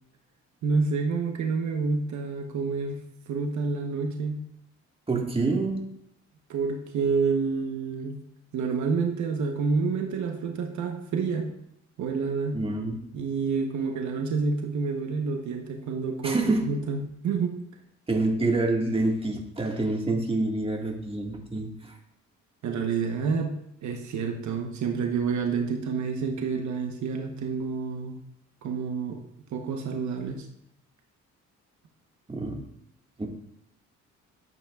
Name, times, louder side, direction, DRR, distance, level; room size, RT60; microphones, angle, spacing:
voice 1, 0.6-4.5 6.5-8.2 8.5-11.5 12.0-12.6 13.1-17.6 22.6-23.6 23.8-28.2 28.6-29.2 29.5-30.5, right 5 dB, 70° right, 3 dB, 1.1 m, -28 dB
voice 2, 5.1-5.8 12.5-13.0 16.2-16.7 18.1-22.0 32.3-32.6 33.2-33.3, right 2 dB, 20° right, 1 dB, 1.8 m, -27 dB
12.0 x 8.4 x 2.4 m, 0.76 s
cardioid pair, 90°, 30 cm